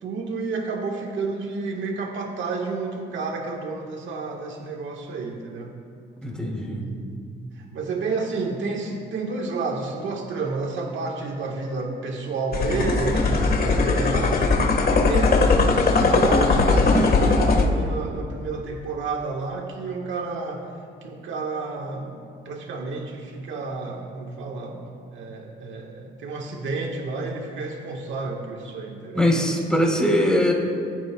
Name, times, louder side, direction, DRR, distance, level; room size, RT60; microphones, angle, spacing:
voice 1, 0.0-5.7 6.6-7.2 7.5-20.6 21.0-24.8 25.1-29.3, right 4 dB, 75° right, 0 dB, 1.5 m, -30 dB
voice 2, 6.2-6.8 29.1-30.5, equal, 5° left, -2 dB, 3.8 m, -21 dB
sound 1, 12.5-17.7, left 3 dB, 50° left, 1.6 m, -19 dB
22.5 x 14.0 x 2.3 m, 2.3 s
cardioid pair, 90°, 20 cm